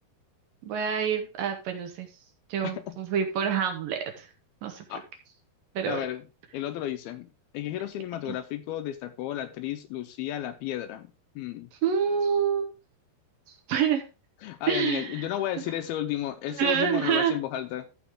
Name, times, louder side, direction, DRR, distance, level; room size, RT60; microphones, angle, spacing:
voice 1, 0.6-2.1 2.5-4.3 4.6-4.8 5.8-6.0 8.3-8.4 11.8-12.7 13.5-14.0 14.7-15.3 15.6-15.7 16.6-17.3, right 7 dB, 70° right, 5 dB, 2.4 m, -27 dB
voice 2, 2.6-3.0 4.9-5.0 5.9-6.2 6.5-7.3 7.5-11.7 14.4-17.9, left 12 dB, 80° left, 9 dB, 2.4 m, -33 dB
14.0 x 5.2 x 3.5 m, 0.30 s
omnidirectional pair, 4.8 m